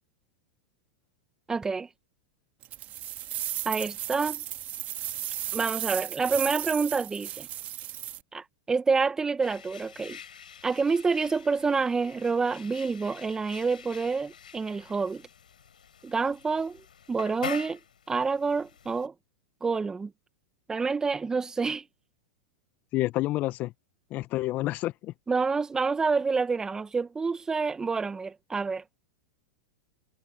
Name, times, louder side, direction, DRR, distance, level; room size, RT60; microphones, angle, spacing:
voice 1, 1.5-1.9 3.7-4.4 5.5-7.5 8.3-10.2 10.6-15.2 16.0-16.8 17.1-17.8 18.1-19.1 19.6-20.1 20.7-21.8 25.3-28.8, right 4 dB, 15° right, 1.8 m, -28 dB
sound 1, 2.6-8.2, right 14 dB, 40° right, 3.2 m, -35 dB
sound 2, 9.4-19.1, left 8 dB, 85° left, 6.3 m, -45 dB
voice 2, 22.9-23.7 24.1-25.1, left 17 dB, 40° left, 1.0 m, -29 dB
hypercardioid pair, 105°, 4 cm